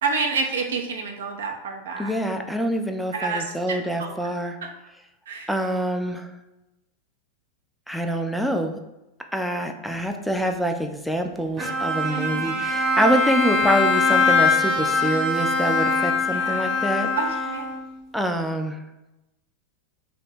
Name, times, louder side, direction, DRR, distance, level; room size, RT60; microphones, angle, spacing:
voice 1, 0.0-2.1 3.1-4.1 5.3-5.5 12.1-12.6 16.3-16.8 17.2-17.7, right 4 dB, 60° right, 2 dB, 0.5 m, -29 dB
voice 2, 2.0-4.6 5.5-6.3 7.9-8.8 9.3-17.1 18.1-18.8, equal, ahead, 4 dB, 0.3 m, -25 dB
Bowed string instrument, 11.6-18.0, left 3 dB, 20° right, 1.0 m, -22 dB
2.7 x 2.2 x 4.1 m, 0.96 s
figure-of-eight pair, 90°, 0 cm